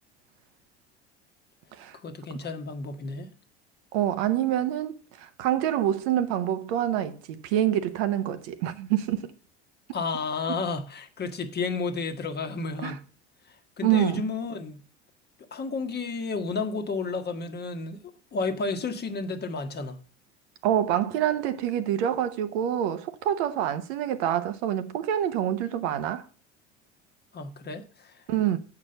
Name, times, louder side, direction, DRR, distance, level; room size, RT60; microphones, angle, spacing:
voice 1, 2.0-3.3 9.9-13.0 13.5-14.8 15.5-20.0 27.3-28.2, left 4 dB, 30° left, 1.2 m, -32 dB
voice 2, 3.9-9.3 12.8-13.0 13.8-14.2 20.6-26.2 28.3-28.6, right 11 dB, 70° right, 0.9 m, -26 dB
7.5 x 4.8 x 6.6 m
hypercardioid pair, 70°, 33 cm